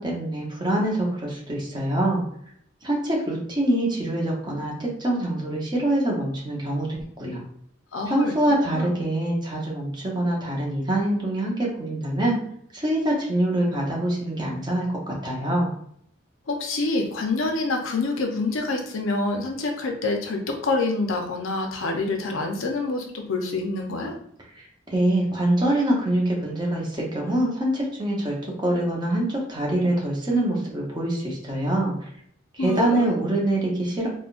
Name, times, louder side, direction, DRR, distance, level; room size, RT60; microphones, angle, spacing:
voice 1, 0.0-2.2 2.8-7.4 8.1-12.4 12.7-15.7 24.5-32.1 32.5-34.1, right 1 dB, 20° right, -3 dB, 0.8 m, -25 dB
voice 2, 7.9-8.3 8.7-8.9 16.5-24.1 32.6-33.1, left 3 dB, 90° left, 3 dB, 0.6 m, -26 dB
3.6 x 2.2 x 2.4 m, 0.67 s
head